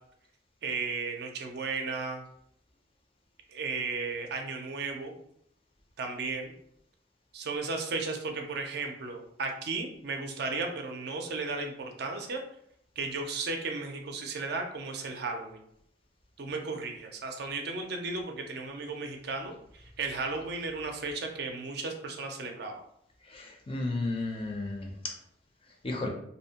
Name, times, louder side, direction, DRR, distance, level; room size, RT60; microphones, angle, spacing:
voice 1, 0.6-2.2 3.5-5.1 6.0-6.5 7.3-12.4 13.0-15.6 16.4-22.8, right 4 dB, 60° right, 3 dB, 0.4 m, -35 dB
voice 2, 23.3-24.9 25.8-26.1, left 2 dB, 30° left, 2 dB, 0.4 m, -33 dB
2.6 x 2.0 x 2.7 m, 0.71 s
head